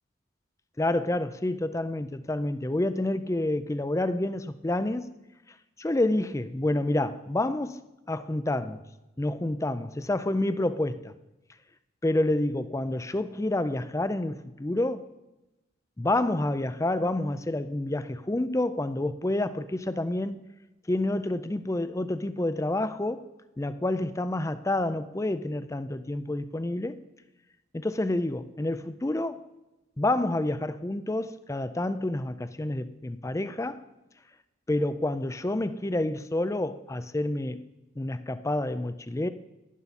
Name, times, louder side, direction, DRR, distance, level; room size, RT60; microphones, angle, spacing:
voice 1, 0.8-5.1 5.8-7.8 8.1-8.8 9.2-11.1 12.0-15.1 16.0-20.4 20.9-23.3 23.6-27.0 27.7-29.4 30.0-33.8 34.7-37.6 38.0-39.3, left 1 dB, 15° left, 0.4 m, -28 dB
11.0 x 11.0 x 4.2 m
head